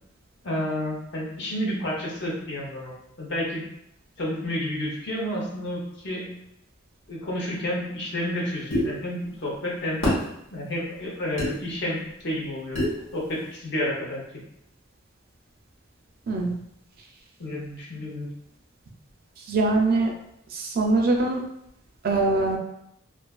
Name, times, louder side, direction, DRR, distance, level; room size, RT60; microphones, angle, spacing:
voice 1, 0.4-3.7 4.2-6.4 7.1-10.0 10.5-12.8 13.1-14.4 17.4-18.3, left 1 dB, 60° left, -3 dB, 0.7 m, -30 dB
sound 1, 8.7-8.9 10.0-10.2 11.4-11.5 12.7-13.0, left 1 dB, 80° left, 1.1 m, -23 dB
voice 2, 19.5-20.1 20.5-21.4 22.0-22.6, right 2 dB, 45° right, 1 dB, 0.4 m, -22 dB
2.4 x 2.3 x 2.3 m, 0.76 s
head